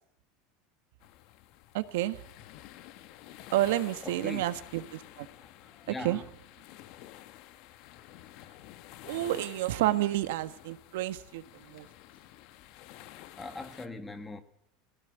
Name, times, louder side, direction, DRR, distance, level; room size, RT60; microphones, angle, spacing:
sound 1, 1.0-13.9, left 14 dB, 50° left, 1.3 m, -51 dB
voice 1, 1.7-2.2 3.5-5.3 6.0-6.2 9.0-11.9, right 15 dB, 85° right, 1.5 m, -30 dB
voice 2, 4.0-4.4 5.3-6.3 9.9-10.0 13.4-14.4, left 2 dB, 10° left, 1.5 m, -41 dB
21.5 x 17.0 x 9.2 m
supercardioid pair, 160°, 0 cm